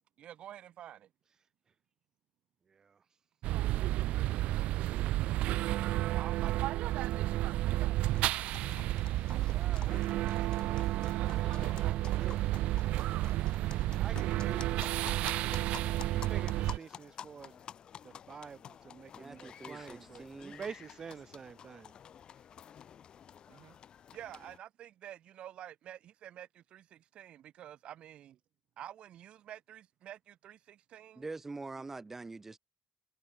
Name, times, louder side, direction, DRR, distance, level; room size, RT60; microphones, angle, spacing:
voice 1, 0.2-1.1 6.0-7.0 23.5-23.8 24.1-28.3 28.8-31.2, right 11 dB, 60° right, 7.6 m, -49 dB
voice 2, 2.7-3.1 9.5-12.4 14.0-17.6 18.0-21.9, right 6 dB, 30° right, 5.6 m, -49 dB
sound 1, 3.4-16.8, right 16 dB, 85° right, 1.2 m, -31 dB
sound 2, 8.0-24.6, left 8 dB, 45° left, 2.7 m, -51 dB
voice 3, 19.1-20.6 31.2-32.6, right 3 dB, 15° right, 5.6 m, -44 dB
cardioid pair, 150°, 2 cm